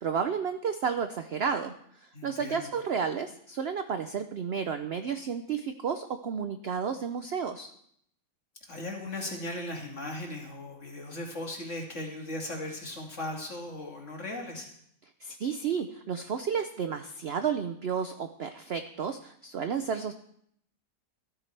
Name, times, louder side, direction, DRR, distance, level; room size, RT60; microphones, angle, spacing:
voice 1, 0.0-7.7 15.2-20.1, right 6 dB, 70° right, 8 dB, 0.6 m, -32 dB
voice 2, 2.1-2.7 8.7-14.7, left 1 dB, 45° left, 0 dB, 2.5 m, -37 dB
13.5 x 13.5 x 3.3 m, 0.70 s
omnidirectional pair, 1.8 m